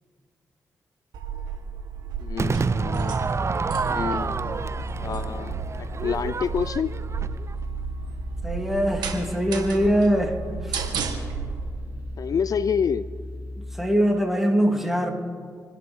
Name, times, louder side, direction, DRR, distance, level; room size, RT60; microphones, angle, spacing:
sound 1, 1.1-11.6, right 6 dB, 90° right, 1.8 m, -34 dB
voice 1, 2.2-3.2 3.9-4.6 5.0-6.9 12.2-13.1, left 7 dB, 60° left, 16 dB, 0.4 m, -28 dB
Crowd / Fireworks, 2.4-7.6, right 4 dB, 40° right, 0.6 m, -29 dB
sound 2, 2.7-13.8, left 1 dB, 25° right, 4.5 m, -37 dB
voice 2, 8.4-10.4 10.6-11.0 13.6-15.1, equal, 5° right, 2 dB, 3.0 m, -23 dB
27.0 x 10.5 x 4.6 m, 2.1 s
supercardioid pair, 45°, 7 cm